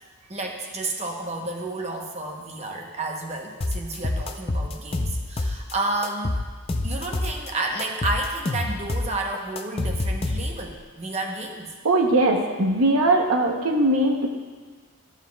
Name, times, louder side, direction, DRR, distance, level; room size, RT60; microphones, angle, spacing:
voice 1, 0.3-6.3 6.8-11.7, right 2 dB, 30° right, 1 dB, 0.8 m, -31 dB
sound 1, 3.6-5.7 6.0-7.5 7.8-10.7, left 2 dB, 25° left, 0.4 m, -27 dB
voice 2, 11.8-14.3, right 2 dB, 75° right, 2 dB, 0.8 m, -20 dB
14.0 x 7.3 x 2.3 m, 1.5 s
head